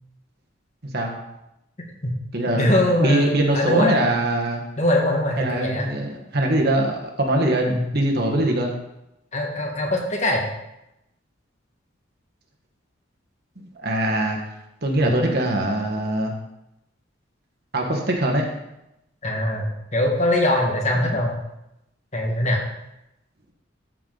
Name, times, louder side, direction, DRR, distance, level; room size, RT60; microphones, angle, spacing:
voice 1, 0.8-1.1 2.3-2.7 3.0-4.6 5.4-8.7 13.8-14.4 14.8-16.3 17.7-18.5 20.9-21.0, right 1 dB, 50° right, 1 dB, 1.4 m, -22 dB
voice 2, 2.5-4.0 4.8-5.9 7.7-7.9 9.3-10.4 15.0-15.1 19.2-19.7 19.9-21.3 22.1-22.6, left 1 dB, 35° left, 0 dB, 1.5 m, -22 dB
13.5 x 4.8 x 3.9 m, 0.87 s
head